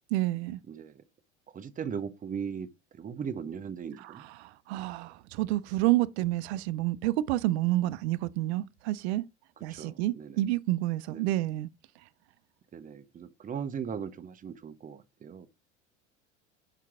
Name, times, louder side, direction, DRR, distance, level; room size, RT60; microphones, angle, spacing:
voice 1, 0.1-0.6 4.0-9.2 9.6-11.7, right 16 dB, 70° right, 0.6 m, -29 dB
voice 2, 0.7-1.0 1.5-2.7 2.9-4.3 9.7-10.4 11.1-11.3 12.7-15.5, right 7 dB, 25° right, 0.8 m, -38 dB
5.8 x 4.6 x 3.6 m
hypercardioid pair, 80°, 34 cm